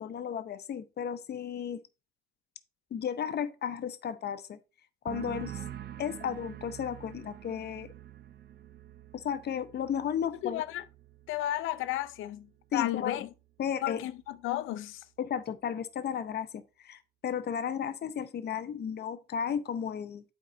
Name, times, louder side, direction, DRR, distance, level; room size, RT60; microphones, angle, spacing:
voice 1, 0.0-1.8 2.9-4.6 5.0-5.6 6.0-7.9 9.1-10.6 12.7-13.3 13.6-14.0 15.2-20.2, left 8 dB, 55° left, 0.8 m, -34 dB
sound 1, 5.1-12.5 12.8-13.3, right 11 dB, 55° right, 0.6 m, -46 dB
voice 2, 10.4-10.8 11.3-13.3 13.8-15.0, left 14 dB, 90° left, 0.5 m, -33 dB
8.4 x 4.6 x 4.0 m
cardioid pair, 90°, 20 cm